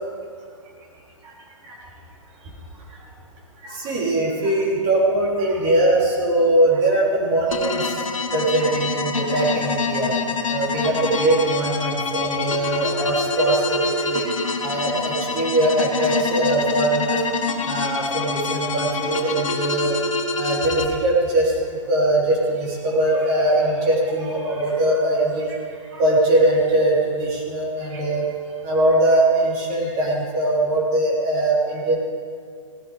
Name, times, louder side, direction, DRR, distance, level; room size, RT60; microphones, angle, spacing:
voice 1, 3.8-7.8 8.3-10.1 10.5-14.2 14.6-17.2 17.7-19.9 20.4-21.5 21.9-22.4 22.8-25.5 26.0-28.2 28.6-31.9, right 1 dB, 35° right, -4 dB, 3.8 m, -21 dB
sound 1, 7.5-20.8, left 4 dB, 75° left, 1.5 m, -26 dB
17.0 x 12.0 x 5.0 m, 2.2 s
figure-of-eight pair, 120°, 17 cm